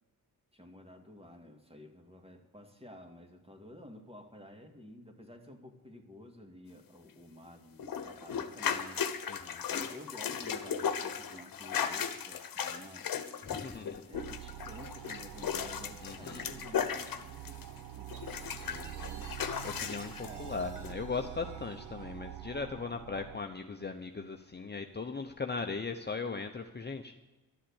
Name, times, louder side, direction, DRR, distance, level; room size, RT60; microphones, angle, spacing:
voice 1, 0.5-9.1 9.7-13.1 14.1-19.4 20.2-20.6, left 1 dB, 15° right, 4 dB, 2.3 m, -52 dB
sound 1, 7.8-17.8 18.1-20.3 20.8-20.9, left 7 dB, 65° left, 1.1 m, -36 dB
voice 2, 9.3-9.6 13.4-14.0 16.0-16.4 18.6-19.0 19.6-27.1, left 4 dB, 30° left, 4 dB, 0.9 m, -38 dB
sound 2, 14.1-23.4, right 12 dB, 75° right, 0.8 m, -46 dB
Chime, 18.1-22.8, right 3 dB, 55° right, 2.8 m, -57 dB
12.5 x 7.5 x 8.6 m, 1.2 s
cardioid pair, 65°, 36 cm